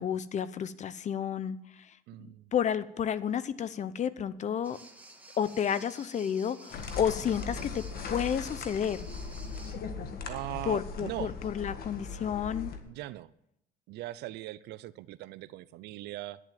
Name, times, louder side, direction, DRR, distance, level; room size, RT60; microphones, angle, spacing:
voice 1, 0.0-1.6 2.5-4.8 5.4-9.1 10.7-12.7, left 8 dB, 45° left, 0.8 m, -31 dB
voice 2, 2.1-2.5 10.3-11.3 12.8-13.3 13.9-16.4, right 16 dB, 85° right, 0.6 m, -40 dB
sound 1, 4.6-9.7, right 2 dB, 10° right, 2.1 m, -52 dB
sound 2, 6.7-12.8, left 5 dB, 65° left, 1.7 m, -39 dB
11.0 x 7.5 x 9.4 m
cardioid pair, 110°, 17 cm